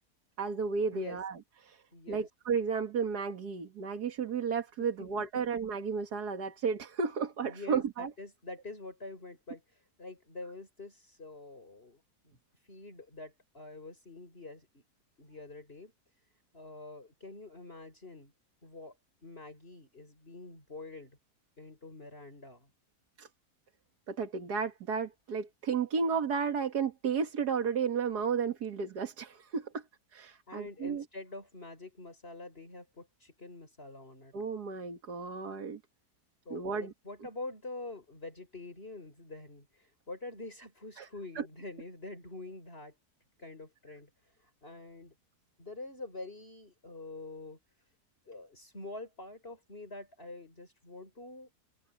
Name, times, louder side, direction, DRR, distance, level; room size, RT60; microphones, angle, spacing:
voice 1, 0.4-1.4 1.6-1.8 2.1-8.1 23.2-23.3 24.1-29.8 30.1-31.0 34.3-35.8 36.5-36.9 41.0-41.1 41.4-41.5, right 6 dB, 85° right, 2.3 m, -33 dB
voice 2, 1.9-2.3 4.8-5.1 7.4-12.4 12.6-14.8 15.2-15.9 16.5-18.3 18.6-18.9 19.2-21.2 21.6-22.7 30.5-34.3 36.4-43.0 43.4-44.1 44.4-45.1 45.6-47.6 48.3-51.5, left 2 dB, 35° left, 6.3 m, -46 dB
omnidirectional pair, 1.7 m